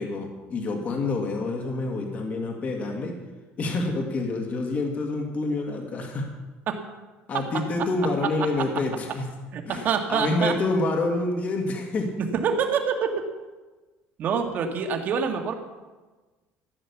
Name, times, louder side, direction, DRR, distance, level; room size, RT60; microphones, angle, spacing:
voice 1, 0.0-3.2 3.6-6.3 7.3-9.3 9.7-12.1, left 2 dB, 35° left, 2 dB, 2.3 m, -27 dB
voice 2, 9.5-10.5 12.3-13.1 14.2-15.5, right 6 dB, 40° right, 4 dB, 1.9 m, -25 dB
14.5 x 10.0 x 7.1 m, 1.3 s
cardioid pair, 160°, 5 cm